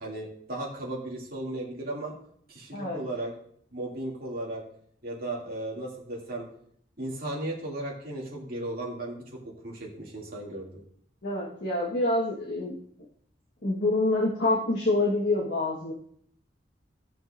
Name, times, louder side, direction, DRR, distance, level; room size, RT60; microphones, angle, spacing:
voice 1, 0.0-2.1 2.5-3.3 3.7-4.6 5.0-6.4 7.0-10.8, right 1 dB, 50° right, -4 dB, 2.5 m, -35 dB
voice 2, 11.2-12.7 13.6-15.9, left 2 dB, 60° left, -4 dB, 1.4 m, -26 dB
16.5 x 5.9 x 2.6 m, 0.65 s
head